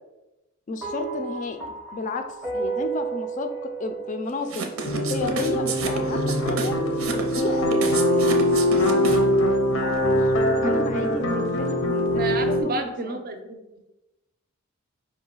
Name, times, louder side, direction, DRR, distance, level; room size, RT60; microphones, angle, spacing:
voice 1, 0.7-4.7 5.1-6.8 7.1-8.3 9.8-12.2 12.5-13.2, left 3 dB, 40° left, 7 dB, 0.4 m, -32 dB
sound 1, 0.8-5.2, right 4 dB, ahead, 0.6 m, -33 dB
sound 2, 4.5-9.4, right 5 dB, 90° right, 0.6 m, -31 dB
sound 3, 4.8-12.6, equal, 75° left, 0.6 m, -22 dB
voice 2, 12.1-13.6, right 2 dB, 45° right, 6 dB, 0.5 m, -30 dB
4.7 x 2.2 x 3.8 m, 0.99 s
head